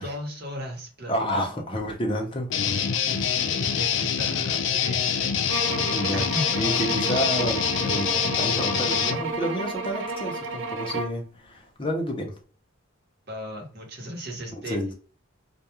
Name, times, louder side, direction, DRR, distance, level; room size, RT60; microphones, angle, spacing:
voice 1, 0.0-1.6 3.6-5.5 6.1-6.5 7.1-7.3 13.3-14.8, equal, 50° right, 1 dB, 1.0 m, -36 dB
voice 2, 1.1-2.5 3.1-3.3 5.8-6.3 6.5-12.3 14.5-14.9, equal, 25° left, 2 dB, 0.6 m, -30 dB
Guitar, 2.5-9.2, left 7 dB, 65° left, 0.4 m, -25 dB
sound 1, 5.5-11.3, right 3 dB, 75° right, 0.5 m, -31 dB
2.3 x 2.2 x 2.8 m, 0.39 s
head